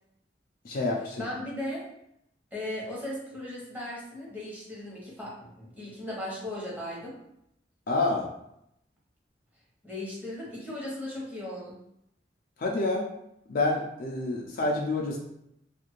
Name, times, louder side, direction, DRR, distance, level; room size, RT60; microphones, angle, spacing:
voice 1, 0.6-1.2 7.9-8.3 12.6-13.1 13.5-15.2, left 2 dB, 55° left, -2 dB, 0.5 m, -28 dB
voice 2, 1.2-1.8 2.5-7.1 9.8-11.8, left 1 dB, 10° right, -6 dB, 1.0 m, -37 dB
2.6 x 2.4 x 3.1 m, 0.78 s
head